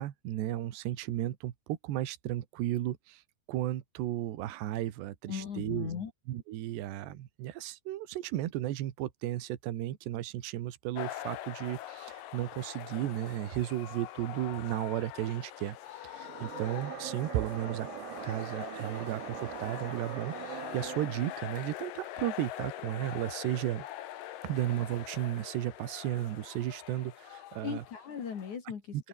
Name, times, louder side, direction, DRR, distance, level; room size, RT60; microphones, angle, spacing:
voice 1, 0.0-3.2 3.5-5.9 6.3-17.9 18.2-23.9 24.4-27.8 28.9-29.1, right 13 dB, 65° right, 3.5 m, -34 dB
voice 2, 5.3-6.1 27.6-29.1, left 7 dB, 45° left, 3.1 m, -38 dB
sound 1, 10.9-28.6, left 13 dB, 75° left, 2.0 m, -44 dB
sound 2, 16.1-21.4, right 23 dB, 85° right, 3.0 m, -43 dB
open air
omnidirectional pair, 5.7 m